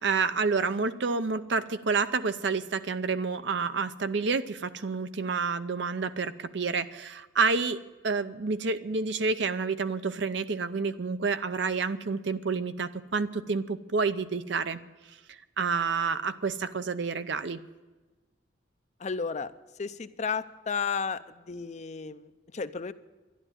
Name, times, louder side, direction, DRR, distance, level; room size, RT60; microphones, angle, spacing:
voice 1, 0.0-14.8 15.3-17.6, right 4 dB, 65° right, 12 dB, 0.7 m, -29 dB
voice 2, 19.0-19.5 19.8-22.9, left 5 dB, 35° left, 12 dB, 0.5 m, -33 dB
12.0 x 11.0 x 8.9 m, 1.2 s
head